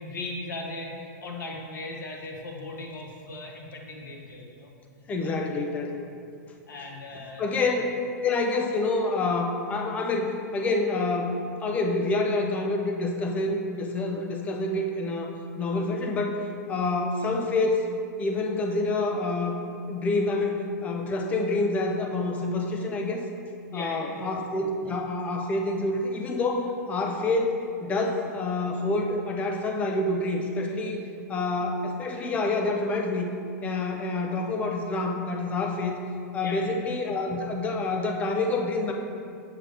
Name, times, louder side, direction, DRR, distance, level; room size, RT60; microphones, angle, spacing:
voice 1, 0.0-4.7 5.2-5.5 6.7-7.4 23.7-24.3 36.4-36.8, left 2 dB, 85° left, 0 dB, 1.3 m, -38 dB
voice 2, 5.1-6.0 7.4-17.9 18.2-23.2 23.7-31.0 31.3-33.3 33.6-36.0 36.3-38.9, left 2 dB, 15° left, 2 dB, 0.5 m, -27 dB
7.5 x 6.2 x 3.4 m, 2.5 s
supercardioid pair, 160°, 10 cm